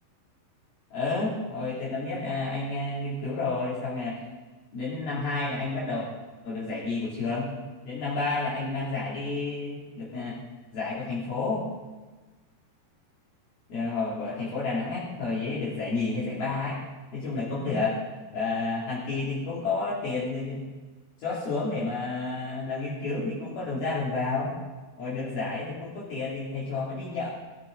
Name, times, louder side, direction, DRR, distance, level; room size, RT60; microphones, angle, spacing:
voice 1, 0.9-4.2 4.7-6.1 6.4-7.5 7.9-10.4 10.7-11.7 13.7-16.8 17.1-18.0 18.3-20.6 21.2-24.6 25.0-27.3, left 3 dB, 55° left, -8 dB, 4.2 m, -30 dB
17.0 x 16.5 x 3.8 m, 1.2 s
omnidirectional pair, 5.7 m